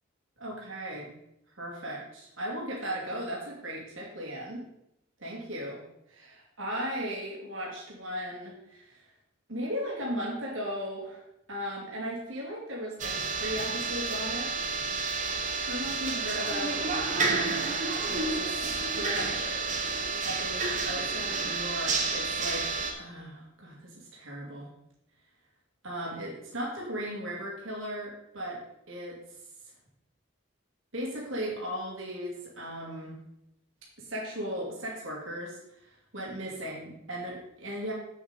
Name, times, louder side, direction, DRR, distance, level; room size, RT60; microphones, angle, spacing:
voice 1, 0.4-1.1 1.6-4.6 5.2-5.8 6.1-9.1 9.5-11.2 11.5-14.5 15.7-17.7 18.0-19.6 20.2-22.7 23.0-24.7 25.8-28.6 28.9-29.2 30.9-33.2 34.0-37.9, equal, 80° right, -3 dB, 2.5 m, -37 dB
sound 1, 13.0-22.9, right 4 dB, 40° right, 1.2 m, -30 dB
7.9 x 7.3 x 4.1 m, 0.81 s
head